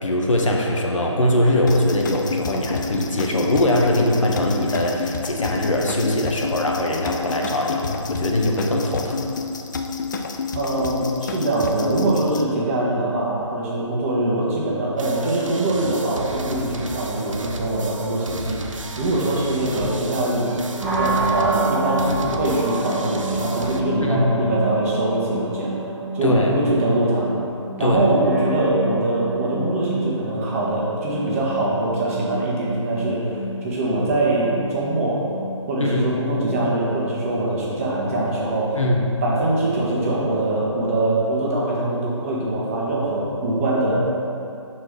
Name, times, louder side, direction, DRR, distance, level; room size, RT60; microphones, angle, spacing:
voice 1, 0.0-9.3 24.0-24.3 26.2-26.5 27.8-28.0 35.8-36.1 38.8-39.1, left 1 dB, 85° left, -1 dB, 1.1 m, -21 dB
sound 1, 1.7-12.4, left 5 dB, 40° left, 0.4 m, -29 dB
voice 2, 10.5-20.6 20.9-25.7 26.1-27.3 27.8-35.3 35.7-38.8 39.2-44.1, right 2 dB, 25° right, -5 dB, 1.2 m, -23 dB
sound 2, 15.0-23.8, right 2 dB, 85° right, 0.7 m, -34 dB
sound 3, 20.8-40.6, right 2 dB, 5° right, 1.1 m, -30 dB
6.2 x 4.3 x 4.9 m, 2.7 s
figure-of-eight pair, 155°, 16 cm